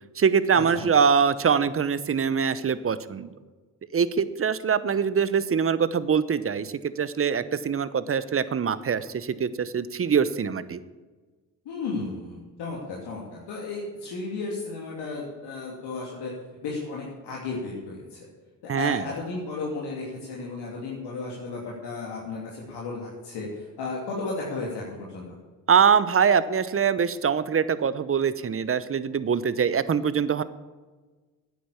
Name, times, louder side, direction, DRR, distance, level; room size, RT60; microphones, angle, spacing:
voice 1, 0.2-3.3 3.9-10.8 18.7-19.0 25.7-30.4, right 6 dB, 30° right, 15 dB, 0.9 m, -23 dB
voice 2, 11.6-16.3 16.6-18.2 18.6-25.3, left 3 dB, 65° left, -3 dB, 2.9 m, -34 dB
9.5 x 9.4 x 8.5 m, 1.3 s
hypercardioid pair, 55°, 43 cm